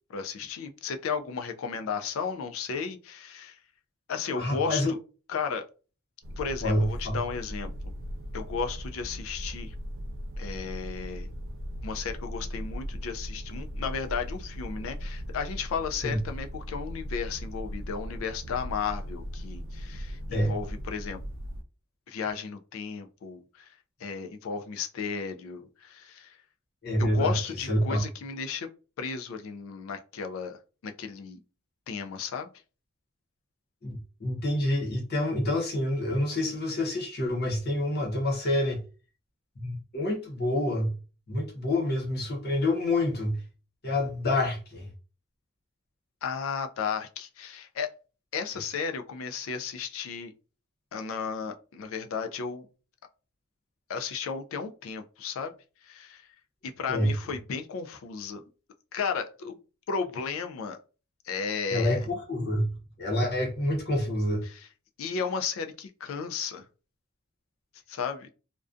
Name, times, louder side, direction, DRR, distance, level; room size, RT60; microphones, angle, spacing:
voice 1, 0.1-3.6 4.1-5.0 5.3-5.6 6.4-7.7 8.3-9.7 10.4-11.3 11.8-21.2 22.1-23.7 24.0-26.4 27.0-28.7 29.0-31.4 31.9-32.5 46.2-47.9 48.3-50.3 50.9-52.7 53.9-55.5 55.8-56.3 56.6-58.4 58.9-59.6 59.9-60.8 61.2-62.1 64.4-64.7 65.0-66.7 67.9-68.3, left 6 dB, 65° left, 0.3 m, -34 dB
voice 2, 4.3-4.9 6.6-7.2 16.0-16.2 20.3-20.6 26.8-27.3 27.7-28.0 33.8-38.8 39.6-41.0 41.3-43.4 43.8-44.9 56.9-57.1 61.7-64.4, left 1 dB, 45° left, 0.8 m, -27 dB
sound 1, 6.2-21.6, equal, 60° right, 0.4 m, -38 dB
2.4 x 2.2 x 2.4 m
head